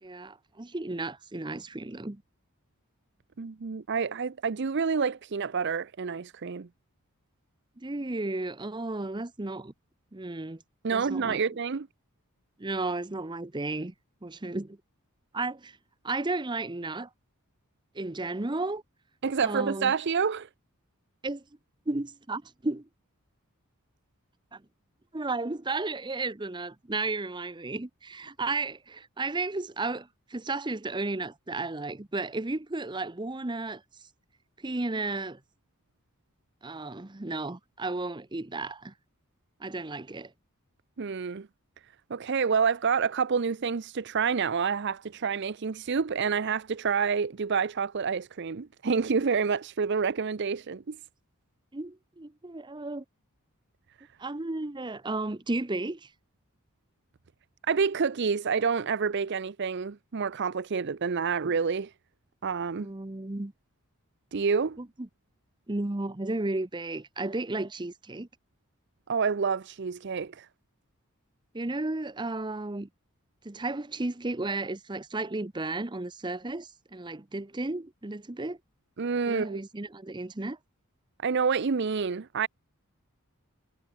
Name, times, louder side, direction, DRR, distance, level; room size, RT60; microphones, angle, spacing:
voice 1, 0.0-2.2 7.8-9.7 10.1-10.6 10.9-11.4 12.6-13.9 14.2-14.8 15.3-15.8 16.0-17.1 17.9-18.8 19.4-19.9 21.2-21.4 21.9-22.9 24.5-24.6 25.1-33.8 34.6-35.4 36.6-38.9 39.6-40.3 51.7-53.0 54.2-56.1 62.7-63.5 64.8-65.1 65.7-68.3 71.5-72.9 73.4-78.6 79.3-80.6, right 2 dB, 20° right, 0.8 m, -33 dB
voice 2, 3.4-6.7 10.8-11.9 19.2-20.5 41.0-41.5 42.1-51.0 57.7-61.9 62.4-62.9 64.3-64.8 69.1-70.5 79.0-79.6 81.2-82.5, right 5 dB, 50° right, 0.5 m, -28 dB
head